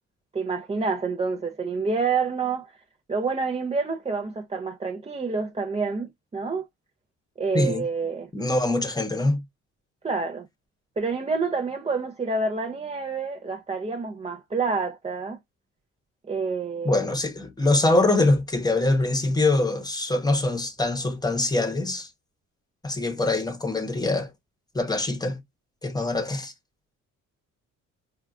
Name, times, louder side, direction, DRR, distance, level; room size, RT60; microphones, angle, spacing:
voice 1, 0.3-2.7 3.1-6.6 7.4-8.3 10.0-10.5 11.0-15.4 16.3-17.1, right 4 dB, 20° right, 0.5 m, -28 dB
voice 2, 8.3-9.4 16.8-22.1 22.8-24.3 24.7-25.4 25.8-26.5, left 2 dB, 15° left, 1.0 m, -23 dB
4.4 x 2.4 x 2.4 m
cardioid pair, 90°, 30 cm